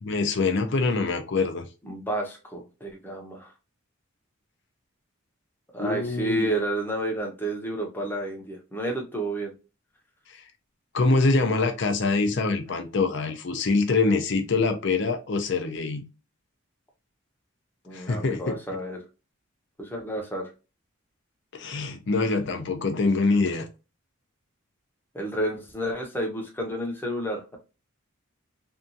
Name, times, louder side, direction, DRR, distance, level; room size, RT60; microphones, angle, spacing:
voice 1, 0.0-1.7 5.8-6.5 10.3-10.4 10.9-16.0 17.9-18.6 21.5-23.7, left 3 dB, 55° left, 0.5 m, -24 dB
voice 2, 1.8-3.5 5.7-9.5 17.8-19.0 19.8-20.5 25.1-27.6, right 1 dB, 10° left, 0.6 m, -30 dB
2.7 x 2.3 x 2.6 m
head